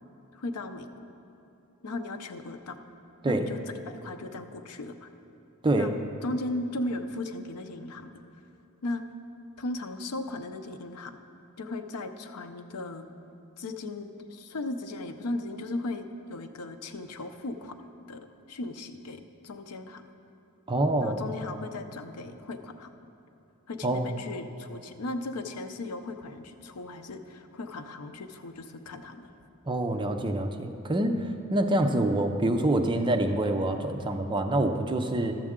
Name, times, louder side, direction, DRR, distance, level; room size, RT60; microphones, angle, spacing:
voice 1, 0.3-0.9 1.8-2.8 3.2-5.1 5.8-5.9 6.2-8.2 8.8-9.0 9.6-11.2 11.6-13.1 13.6-17.8 18.1-20.0 21.0-22.9 23.7-29.3, left 2 dB, 90° left, 8 dB, 0.6 m, -37 dB
voice 2, 20.7-21.2 23.8-24.1 29.7-35.4, right 1 dB, 20° right, 5 dB, 0.5 m, -26 dB
12.5 x 7.5 x 3.7 m, 2.9 s
head